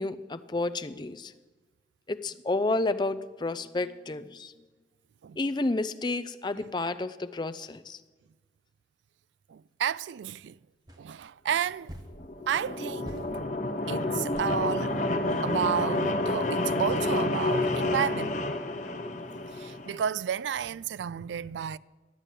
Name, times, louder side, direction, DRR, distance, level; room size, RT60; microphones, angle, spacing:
voice 1, 0.0-1.3 2.1-4.5 5.4-8.0, left 2 dB, 25° left, 0.5 m, -30 dB
voice 2, 9.5-10.6 11.0-11.9 12.5-13.3 13.9-15.0 15.4-18.3 19.5-21.8, right 8 dB, 85° right, 0.3 m, -31 dB
sound 1, 10.9-11.0 11.9-12.1 13.0-13.3 14.3-14.5 15.3-15.5 16.9-17.1, equal, 20° right, 1.3 m, -44 dB
sound 2, 12.1-20.0, left 2 dB, 45° left, 0.8 m, -29 dB
12.0 x 8.9 x 8.3 m
head